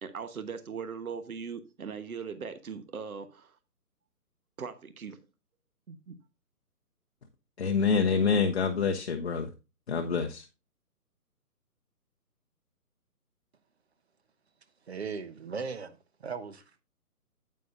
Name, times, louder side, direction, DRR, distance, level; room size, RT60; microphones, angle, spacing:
voice 1, 0.0-3.6 4.6-5.2 5.9-6.2, right 6 dB, 65° right, 1.3 m, -39 dB
voice 2, 7.6-9.5 9.9-10.4, left 5 dB, 40° left, 0.8 m, -26 dB
voice 3, 14.9-16.6, right 5 dB, 45° right, 0.9 m, -38 dB
9.1 x 8.6 x 2.6 m
figure-of-eight pair, 155°, 47 cm